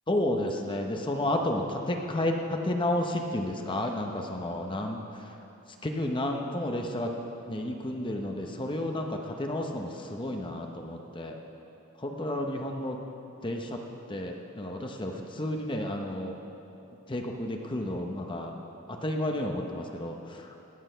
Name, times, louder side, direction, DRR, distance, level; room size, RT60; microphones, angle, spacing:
voice 1, 0.1-5.2 5.8-7.1 7.5-11.4 12.0-13.0 13.4-13.8 14.1-16.4 17.1-18.5 18.9-20.5, left 1 dB, 20° left, 3 dB, 0.9 m, -31 dB
17.0 x 8.7 x 5.7 m, 2.9 s
head